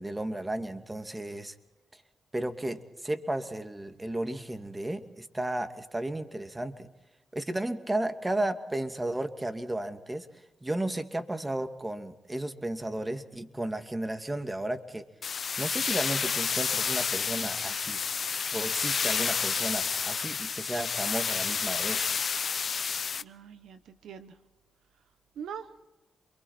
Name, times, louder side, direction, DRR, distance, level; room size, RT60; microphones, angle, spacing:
voice 1, 0.0-1.5 2.3-6.9 7.3-10.3 10.6-15.0 15.6-18.0 18.5-22.0, right 1 dB, 20° right, 7 dB, 2.5 m, -33 dB
sound 1, 15.2-23.2, left 6 dB, 60° left, 0.8 m, -30 dB
voice 2, 23.2-24.3 25.4-25.8, right 7 dB, 80° right, 10 dB, 1.1 m, -43 dB
28.5 x 23.0 x 4.4 m, 1.0 s
supercardioid pair, 55°, 0 cm